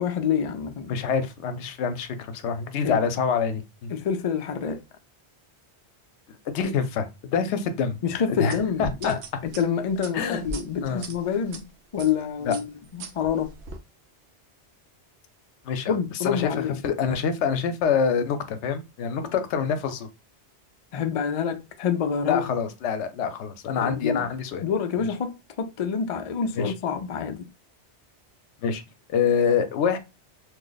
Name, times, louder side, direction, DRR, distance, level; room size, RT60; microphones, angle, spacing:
voice 1, 0.0-0.9 2.8-3.0 3.9-4.8 8.0-11.6 11.9-12.7 12.9-13.6 15.9-16.8 20.9-22.4 23.8-24.2 24.6-27.5, left 7 dB, 60° left, 0.3 m, -27 dB
voice 2, 0.9-3.9 6.3-8.0 8.4-9.2 10.1-10.4 10.8-11.1 12.4-12.5 15.6-16.0 16.2-20.1 22.3-24.6 25.0-25.1 26.5-26.7 28.6-28.8 29.1-30.0, left 6 dB, 85° left, 0.9 m, -26 dB
sound 1, 8.5-11.6 12.0-12.2 12.5-13.8, right 3 dB, 80° right, 0.9 m, -39 dB
3.0 x 2.0 x 3.8 m
omnidirectional pair, 1.1 m